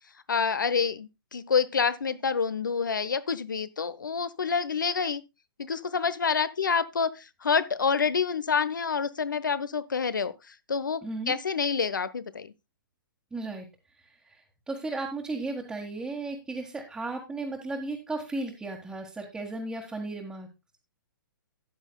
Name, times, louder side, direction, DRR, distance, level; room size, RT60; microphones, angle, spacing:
voice 1, 0.3-5.2 5.6-12.5, left 6 dB, 65° left, 1.0 m, -28 dB
voice 2, 11.0-11.3 13.3-13.7 14.0-20.5, right 2 dB, 5° right, 1.7 m, -35 dB
14.0 x 10.0 x 2.3 m
figure-of-eight pair, 120°, 11 cm